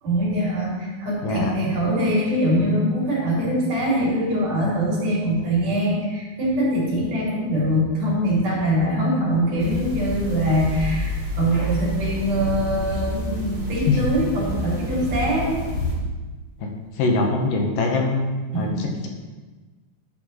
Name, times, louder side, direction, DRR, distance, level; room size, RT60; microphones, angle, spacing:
voice 1, 0.0-15.6 18.5-18.9, equal, 60° right, -7 dB, 4.6 m, -23 dB
voice 2, 1.2-1.5 13.9-14.0 16.6-16.7 17.0-18.3 18.5-19.1, left 3 dB, 75° left, 1 dB, 2.7 m, -22 dB
sound 1, 9.6-15.9, equal, 30° right, 0.7 m, -29 dB
13.0 x 7.9 x 3.2 m, 1.3 s
omnidirectional pair, 4.1 m